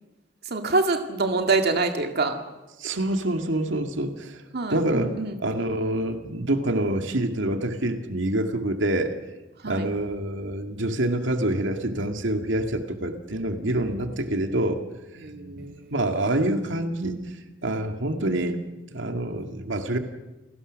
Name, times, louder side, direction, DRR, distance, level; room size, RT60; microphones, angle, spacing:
voice 1, 0.4-2.4 4.5-5.4 9.6-9.9 15.2-15.9, right 3 dB, 60° right, 5 dB, 2.0 m, -26 dB
voice 2, 2.8-4.4 4.7-9.1 9.6-14.8 15.1-18.6 18.9-20.0, right 1 dB, 90° right, 5 dB, 2.1 m, -27 dB
29.0 x 18.5 x 6.4 m, 1.1 s
head